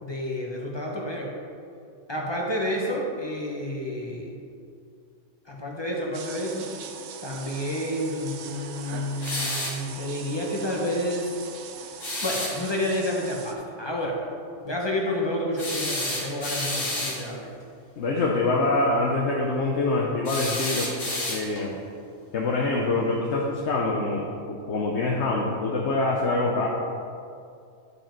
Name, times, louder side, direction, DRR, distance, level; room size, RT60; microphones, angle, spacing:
voice 1, 0.0-1.3 2.1-4.3 5.5-6.7 7.2-11.3 12.2-14.2 14.6-17.5, left 1 dB, 25° left, -2 dB, 0.9 m, -29 dB
sound 1, 6.1-13.5, right 6 dB, 70° right, 0.9 m, -41 dB
sound 2, 9.2-9.8 12.0-12.6 15.6-17.2 20.2-21.7, left 1 dB, 85° left, 2.1 m, -30 dB
voice 2, 18.0-20.9 21.3-21.8 22.3-26.7, left 2 dB, 65° left, -1 dB, 1.0 m, -25 dB
9.8 x 5.0 x 4.5 m, 2.4 s
omnidirectional pair, 1.3 m